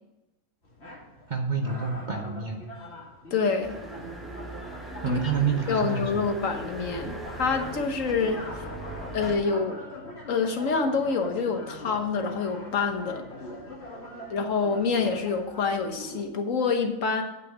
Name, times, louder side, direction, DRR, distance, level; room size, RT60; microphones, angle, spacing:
sound 1, 0.6-16.2, left 1 dB, 50° left, 2.0 m, -43 dB
voice 1, 1.3-2.7 5.0-6.3, right 5 dB, 40° right, 3 dB, 0.9 m, -28 dB
voice 2, 3.3-3.8 5.1-5.2 5.7-8.5 9.1-9.8 10.3-13.3 14.3-17.2, left 5 dB, 70° left, 6 dB, 1.5 m, -27 dB
sound 2, 3.6-9.4, right 1 dB, ahead, 1.4 m, -39 dB
9.6 x 6.1 x 6.1 m, 0.99 s
omnidirectional pair, 1.4 m